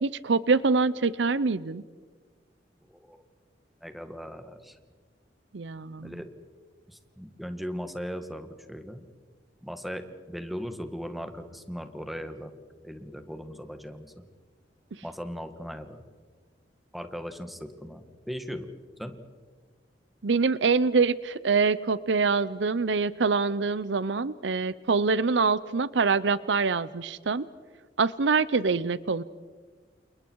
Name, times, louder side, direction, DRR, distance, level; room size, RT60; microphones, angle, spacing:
voice 1, 0.0-1.8 5.5-6.1 20.2-27.4 28.0-29.2, right 4 dB, 70° right, 17 dB, 0.6 m, -25 dB
voice 2, 2.9-3.2 3.8-4.8 6.0-6.2 6.9-9.1 9.6-12.5 12.8-14.2 15.0-16.0 16.9-18.7 19.0-19.1, equal, ahead, 7 dB, 1.8 m, -38 dB
29.5 x 28.5 x 4.7 m, 1.5 s
head